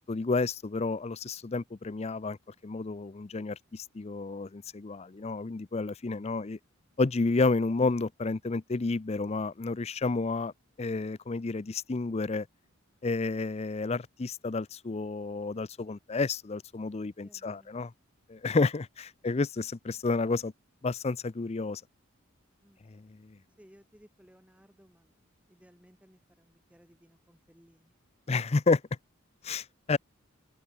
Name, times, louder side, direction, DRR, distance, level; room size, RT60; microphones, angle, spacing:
voice 1, 0.1-2.4 2.6-6.6 7.0-10.5 10.8-12.5 13.0-17.9 18.3-20.5 20.8-21.8 22.9-23.1 28.3-28.8 29.4-30.0, left 3 dB, 30° left, 0.5 m, -30 dB
voice 2, 17.2-17.7 22.6-22.9 23.6-25.2 25.5-27.9, equal, 5° right, 3.2 m, -60 dB
open air
head